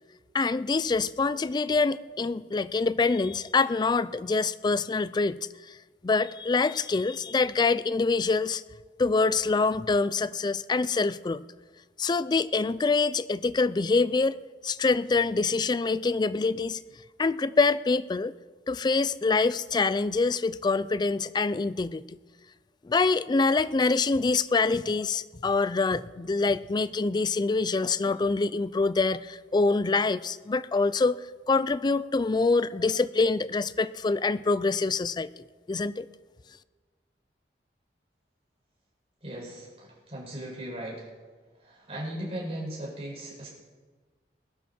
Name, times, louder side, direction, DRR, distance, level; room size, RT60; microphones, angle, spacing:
voice 1, 0.3-5.4 6.0-8.6 9.0-11.4 12.0-16.8 17.2-18.3 18.7-22.0 22.8-31.2 31.5-35.3 35.7-36.1, left 3 dB, 25° left, 16 dB, 0.3 m, -25 dB
voice 2, 39.2-41.1 41.6-43.5, right 1 dB, 35° right, -4 dB, 5.5 m, -37 dB
20.0 x 12.0 x 4.3 m, 1.4 s
head